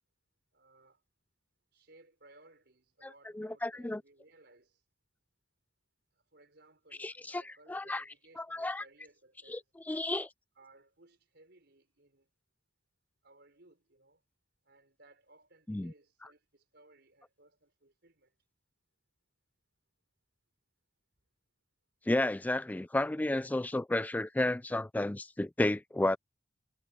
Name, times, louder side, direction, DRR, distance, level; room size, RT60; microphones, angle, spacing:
voice 1, 0.5-1.0 1.7-4.8 6.1-9.6 10.6-12.3 13.2-14.2 14.6-18.3, right 2 dB, 65° right, 5.5 m, -62 dB
voice 2, 3.3-4.0 7.0-8.0 8.4-8.8 9.5-9.6 9.9-10.3 15.7-15.9 22.1-26.2, left 1 dB, 10° left, 0.3 m, -32 dB
head